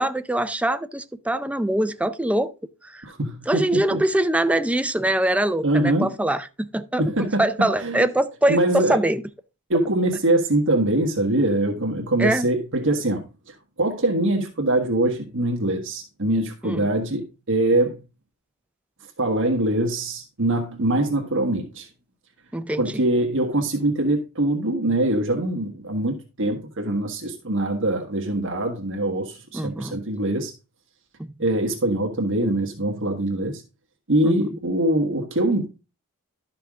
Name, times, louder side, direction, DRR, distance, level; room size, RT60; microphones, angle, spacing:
voice 1, 0.0-2.5 2.8-3.0 3.5-7.0 7.4-9.2 12.2-12.5 16.6-16.9 22.5-22.9 29.5-30.0 31.2-31.3 34.2-34.4, right 1 dB, 5° right, 0.5 m, -23 dB
voice 2, 3.0-4.0 5.6-6.1 7.0-8.1 8.5-9.0 9.7-18.0 19.2-21.9 22.8-30.5 31.4-33.6 34.1-35.7, right 1 dB, 60° right, 1.5 m, -23 dB
12.0 x 5.8 x 3.6 m
head